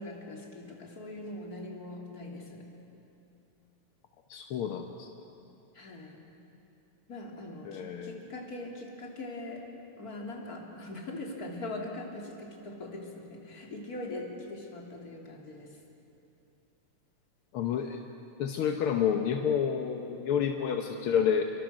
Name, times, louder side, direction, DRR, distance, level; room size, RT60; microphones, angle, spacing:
voice 1, 0.0-2.6 5.7-6.2 7.1-9.6 10.0-15.8, left 2 dB, 30° left, -1 dB, 3.2 m, -41 dB
voice 2, 4.3-5.1 7.6-8.2 17.5-18.0 18.4-21.4, left 8 dB, 65° left, 4 dB, 1.4 m, -29 dB
27.5 x 23.5 x 6.5 m, 2.8 s
omnidirectional pair, 3.5 m